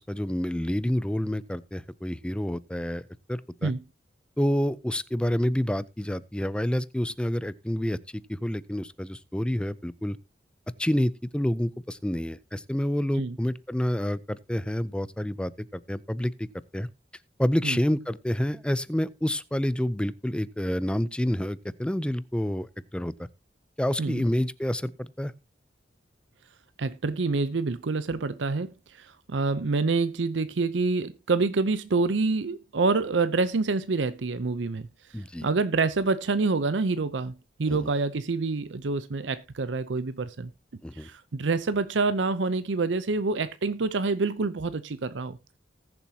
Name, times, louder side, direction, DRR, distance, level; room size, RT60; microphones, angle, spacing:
voice 1, 0.0-3.0 3.3-3.7 4.4-8.0 8.3-10.2 10.8-16.5 16.7-16.9 17.4-23.1 23.8-25.3 35.1-35.5 37.7-37.9 40.8-41.1, equal, 5° left, 0.5 m, -28 dB
voice 2, 26.8-34.9 35.4-40.5 41.0-45.4, right 3 dB, 85° right, 0.6 m, -27 dB
19.5 x 7.1 x 2.8 m
head